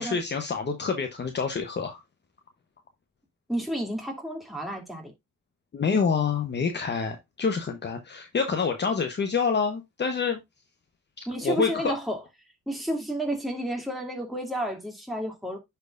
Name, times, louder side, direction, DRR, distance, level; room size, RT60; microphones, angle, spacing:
voice 1, 0.0-2.0 5.7-10.4 11.2-11.9, left 5 dB, 35° left, 1.0 m, -27 dB
voice 2, 3.5-5.1 11.3-12.2 12.7-15.6, right 1 dB, ahead, 2.7 m, -31 dB
10.0 x 4.6 x 2.5 m
cardioid pair, 90°, 30 cm